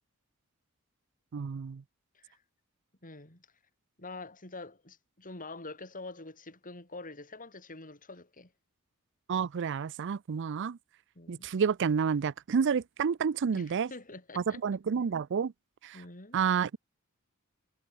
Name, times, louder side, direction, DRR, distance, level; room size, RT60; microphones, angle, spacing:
voice 1, 1.3-1.8 9.3-10.8 11.3-13.9 14.4-15.5 15.8-16.0 16.3-16.8, right 6 dB, 55° right, 0.4 m, -29 dB
voice 2, 3.0-3.5 4.0-8.5 11.1-11.5 13.5-14.6 15.9-16.4, left 3 dB, 40° left, 6.2 m, -46 dB
head